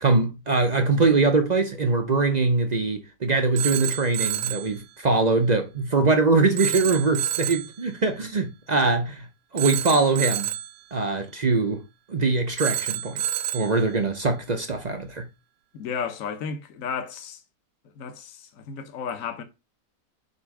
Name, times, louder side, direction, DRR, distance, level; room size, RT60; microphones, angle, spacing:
voice 1, 0.0-9.3 9.5-10.5 10.9-11.8 12.1-13.2 13.5-15.3, right 3 dB, 50° right, 0.5 m, -22 dB
Telephone, 3.6-4.7 6.6-7.7 9.6-10.7 12.6-13.7, right 11 dB, 70° right, 0.9 m, -28 dB
voice 2, 15.7-17.4 18.0-19.4, left 6 dB, 55° left, 1.3 m, -33 dB
6.9 x 3.0 x 4.8 m
omnidirectional pair, 1.8 m